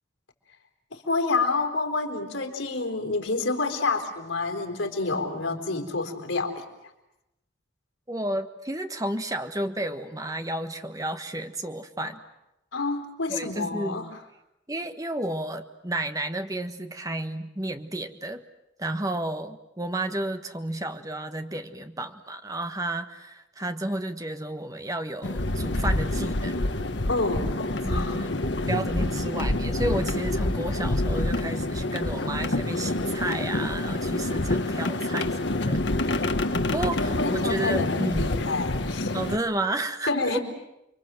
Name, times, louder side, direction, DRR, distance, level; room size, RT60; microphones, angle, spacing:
voice 1, 0.9-6.6 12.7-14.1 27.1-28.2 36.8-39.1 40.1-40.4, left 3 dB, 90° left, 3 dB, 4.2 m, -28 dB
voice 2, 8.1-12.2 13.3-14.1 14.7-18.4 18.8-26.7 27.8-28.4 28.7-36.3 36.7-38.3 39.1-40.4, right 1 dB, 20° right, 7 dB, 1.4 m, -32 dB
sound 1, 25.2-39.4, left 2 dB, 65° left, 1.3 m, -27 dB
30.0 x 23.5 x 7.7 m, 0.91 s
head